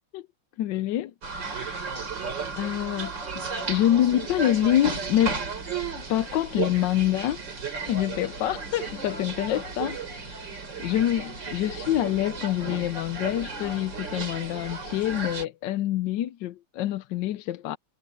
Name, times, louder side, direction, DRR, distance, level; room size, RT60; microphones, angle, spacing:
voice 1, 0.6-1.8 2.5-3.2 3.6-5.5 6.1-7.4 7.9-10.4 10.8-17.8, left 12 dB, 90° left, 1.3 m, -26 dB
sound 1, 1.2-15.5, right 4 dB, 90° right, 4.3 m, -34 dB
omnidirectional pair, 1.9 m